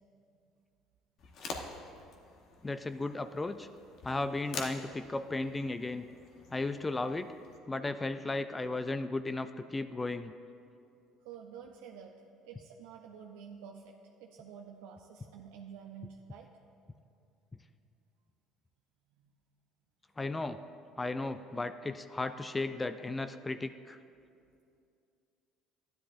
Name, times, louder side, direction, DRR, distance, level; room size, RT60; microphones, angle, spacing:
sound 1, 1.2-7.6, left 4 dB, 60° left, 1.0 m, -47 dB
voice 1, 2.6-3.7 4.0-6.1 6.5-7.3 7.7-10.3 20.2-20.6 21.0-24.0, left 2 dB, 15° left, 10 dB, 0.3 m, -35 dB
voice 2, 11.2-12.1 12.4-13.9 14.2-16.5 19.2-19.3, right 7 dB, 85° right, 1 dB, 0.5 m, -49 dB
12.5 x 10.0 x 2.5 m, 2.5 s
supercardioid pair, 95°, 0 cm